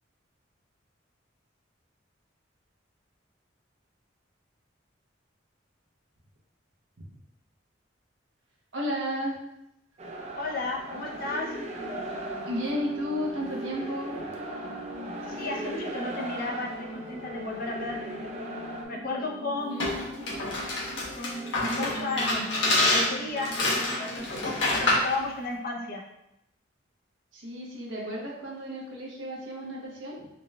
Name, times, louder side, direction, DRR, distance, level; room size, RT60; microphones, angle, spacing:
voice 1, 8.7-9.4 12.4-14.3 19.7-20.0 27.3-30.3, equal, 90° right, -3 dB, 1.0 m, -33 dB
sound 1, 10.0-18.8, right 1 dB, 35° right, 0.5 m, -39 dB
voice 2, 10.4-11.5 15.3-18.2 18.9-19.9 21.2-22.5 22.9-23.5 24.0-26.0, left 2 dB, 50° left, 0 dB, 0.6 m, -33 dB
sound 2, 11.8-24.2, equal, 50° right, 1.1 m, -41 dB
sound 3, 19.8-25.1, left 2 dB, 70° left, 1.1 m, -27 dB
4.0 x 2.3 x 3.2 m, 0.81 s
head